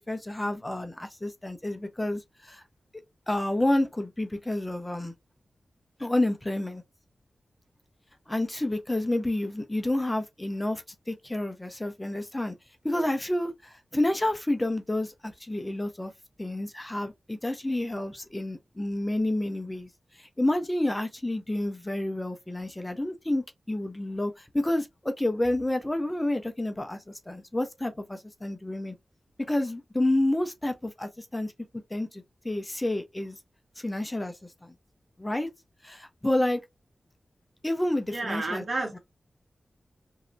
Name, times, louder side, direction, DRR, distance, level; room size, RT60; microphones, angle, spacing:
voice 1, 0.1-2.6 3.3-5.1 6.0-6.8 8.3-12.5 12.8-16.1 16.4-19.9 20.2-28.9 29.5-31.5 31.9-33.4 33.8-34.3 34.6-34.7 35.2-35.5 35.8-36.6 37.6-38.6, left 1 dB, 15° left, 0.6 m, -29 dB
voice 2, 38.1-39.0, right 2 dB, 65° right, 1.8 m, -31 dB
3.1 x 2.7 x 2.6 m
cardioid pair, 65°, 0 cm